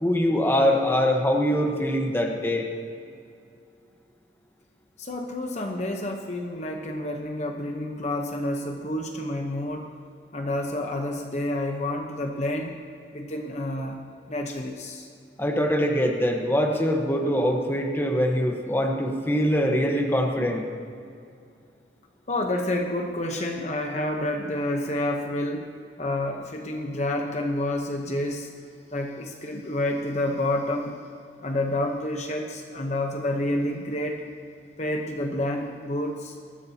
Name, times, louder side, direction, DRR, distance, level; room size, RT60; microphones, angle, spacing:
voice 1, 0.0-2.7 15.4-20.6, equal, 10° left, 1 dB, 1.1 m, -23 dB
voice 2, 5.0-9.9 10.3-12.8 13.1-14.0 14.3-15.1 22.3-25.7 26.0-28.5 28.9-31.0 31.4-34.2 34.8-36.3, left 1 dB, 40° left, 3 dB, 0.9 m, -29 dB
20.0 x 14.0 x 2.9 m, 2.4 s
head